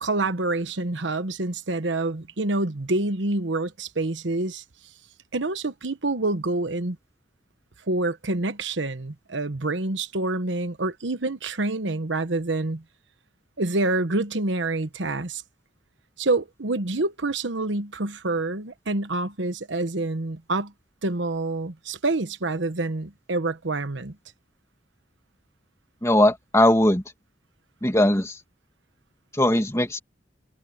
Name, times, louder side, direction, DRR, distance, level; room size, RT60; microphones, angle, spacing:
voice 1, 0.0-4.6 5.3-7.0 7.9-12.8 13.6-15.4 16.2-20.7 21.0-24.1, right 2 dB, 80° right, 1.2 m, -27 dB
voice 2, 26.0-27.0 27.8-28.4 29.3-30.0, left 1 dB, 15° left, 2.6 m, -19 dB
head